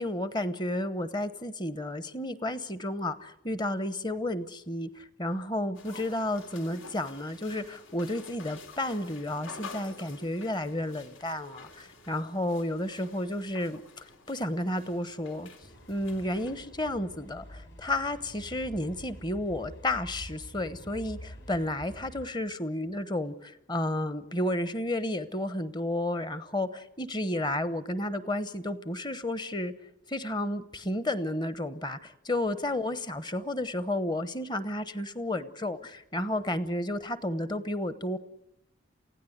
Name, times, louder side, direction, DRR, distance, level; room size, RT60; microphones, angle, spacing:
voice 1, 0.0-15.5 15.9-29.7 30.1-38.2, left 1 dB, 20° left, 14 dB, 1.0 m, -32 dB
sound 1, 5.7-16.6, left 3 dB, 80° left, 3.1 m, -49 dB
sound 2, 15.6-22.3, equal, 60° left, 4.9 m, -47 dB
28.5 x 16.5 x 8.0 m, 0.82 s
head